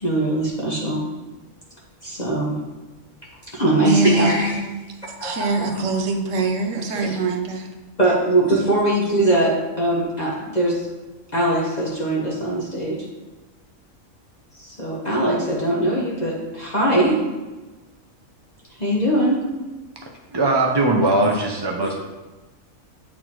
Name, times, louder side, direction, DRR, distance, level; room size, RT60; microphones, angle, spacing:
voice 1, 0.0-1.0 2.0-2.6 3.5-4.6 5.2-5.8 6.9-7.2 8.0-10.8 11.3-13.0 14.6-17.2 18.8-19.5 21.2-21.3, right 1 dB, 30° left, -5 dB, 1.3 m, -21 dB
voice 2, 3.8-4.4 5.2-7.7, right 3 dB, 65° right, 4 dB, 1.2 m, -23 dB
voice 3, 20.3-21.9, right 2 dB, 35° right, 0 dB, 0.4 m, -20 dB
8.5 x 4.2 x 4.5 m, 1.2 s
omnidirectional pair, 1.4 m